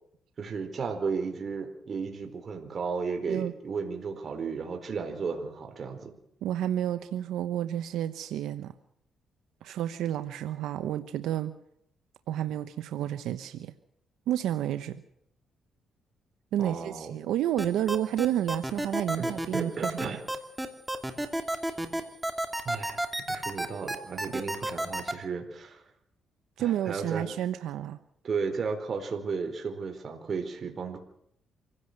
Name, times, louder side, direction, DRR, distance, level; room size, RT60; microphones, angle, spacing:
voice 1, 0.4-6.1 16.6-17.1 19.2-20.2 22.6-25.8 26.6-27.3 28.2-31.0, right 5 dB, 45° right, 5 dB, 4.4 m, -34 dB
voice 2, 6.4-8.7 9.6-11.5 12.3-13.7 14.3-15.0 16.5-20.1 26.6-28.0, right 11 dB, 85° right, 10 dB, 1.0 m, -30 dB
sound 1, 17.6-25.1, right 1 dB, 10° right, 2.9 m, -30 dB
26.0 x 16.5 x 6.7 m, 0.72 s
cardioid pair, 90°, 0 cm